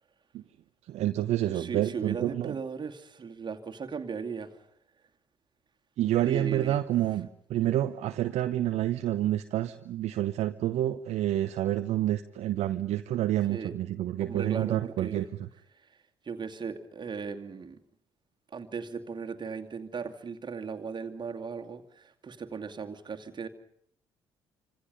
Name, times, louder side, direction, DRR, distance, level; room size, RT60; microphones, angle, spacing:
voice 1, 0.9-2.6 6.0-15.5, right 13 dB, 55° right, 9 dB, 0.9 m, -28 dB
voice 2, 1.5-4.7 6.2-6.8 13.5-13.7 14.2-15.3 15.8-16.0 16.2-17.8 18.5-23.5, right 5 dB, 35° right, 5 dB, 2.4 m, -37 dB
27.5 x 26.0 x 5.4 m, 0.69 s
figure-of-eight pair, 45°, 14 cm